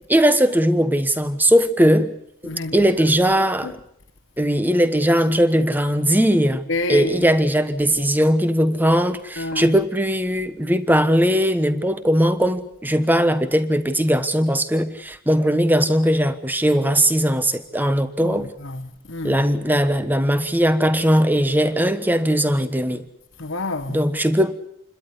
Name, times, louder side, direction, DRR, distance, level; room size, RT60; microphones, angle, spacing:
voice 1, 0.1-2.1 2.4-3.8 4.4-6.6 6.9-18.5 19.2-23.0 23.9-24.6, equal, 10° right, 1.2 m, -19 dB
voice 2, 2.4-2.7 3.6-3.7 6.7-7.2 9.4-9.8 18.2-19.4 23.4-24.0, left 2 dB, 60° left, 1.4 m, -28 dB
28.0 x 13.0 x 9.8 m
head